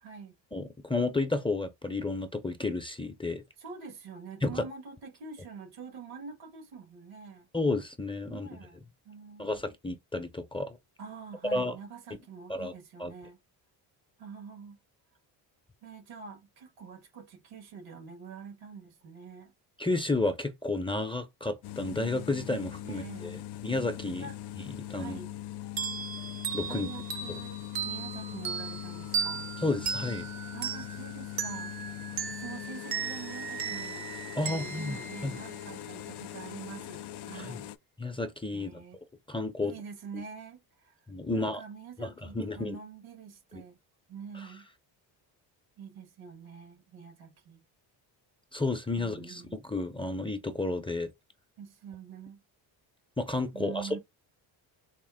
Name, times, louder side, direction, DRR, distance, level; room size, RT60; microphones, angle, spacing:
voice 1, 0.0-0.4 3.6-7.5 8.3-9.6 11.0-13.4 14.2-14.8 15.8-19.5 22.8-23.5 24.2-24.4 25.0-25.4 26.7-27.6 27.8-29.5 30.5-31.7 32.3-34.1 34.4-37.7 38.5-39.0 39.6-40.9 41.3-43.8 44.1-44.7 45.8-47.6 49.0-49.6 51.6-52.4 53.5-54.0, right 6 dB, 80° right, 1.7 m, -45 dB
voice 2, 0.5-3.4 4.4-4.7 7.5-8.6 9.4-10.8 11.5-11.8 12.5-12.7 13.0-13.1 19.8-23.4 23.6-24.3 24.5-25.2 26.5-26.9 29.6-30.3 34.4-35.4 37.3-37.6 38.0-38.8 39.3-39.7 41.1-41.6 42.0-42.8 43.5-43.6 48.5-51.1 53.2-54.0, left 2 dB, 10° left, 0.6 m, -32 dB
sound 1, 21.6-37.8, left 13 dB, 60° left, 0.5 m, -41 dB
sound 2, 25.8-36.0, right 7 dB, 50° right, 0.8 m, -37 dB
4.2 x 2.0 x 3.6 m
cardioid pair, 85°, 46 cm